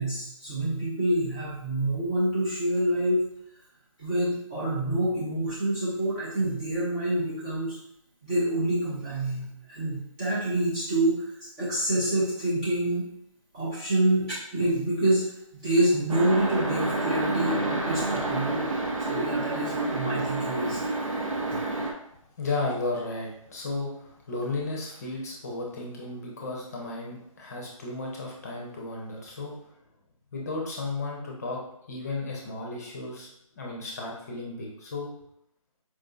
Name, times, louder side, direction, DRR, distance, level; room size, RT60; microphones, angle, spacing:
voice 1, 0.0-3.2 4.0-7.8 8.2-13.1 13.5-14.3 14.5-15.2 15.5-18.7 19.0-20.8, right 1 dB, 10° right, -9 dB, 0.5 m, -27 dB
sound 1, 16.1-21.9, right 2 dB, 70° right, 0.7 m, -29 dB
voice 2, 22.4-29.5 30.3-31.6 31.9-33.3 33.6-35.1, left 3 dB, 30° left, -2 dB, 0.7 m, -34 dB
4.6 x 2.6 x 2.3 m, 0.76 s
figure-of-eight pair, 150°, 18 cm